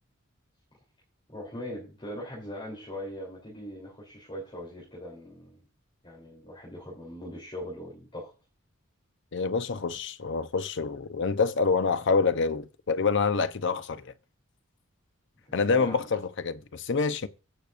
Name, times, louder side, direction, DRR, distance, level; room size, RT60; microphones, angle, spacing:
voice 1, 1.3-5.6 6.0-8.3 15.5-16.1, left 1 dB, 25° left, 3.1 m, -40 dB
voice 2, 9.3-14.1 15.5-17.3, left 4 dB, 60° left, 0.7 m, -27 dB
17.5 x 6.6 x 2.5 m
head